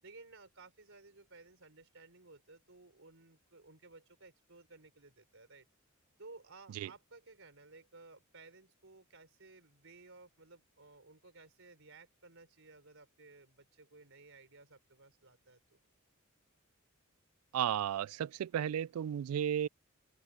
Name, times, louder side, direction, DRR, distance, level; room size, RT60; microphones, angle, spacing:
voice 1, 0.0-5.7 6.2-15.8, right 3 dB, 65° right, 4.6 m, -57 dB
voice 2, 17.5-19.7, right 9 dB, 90° right, 0.3 m, -34 dB
open air
head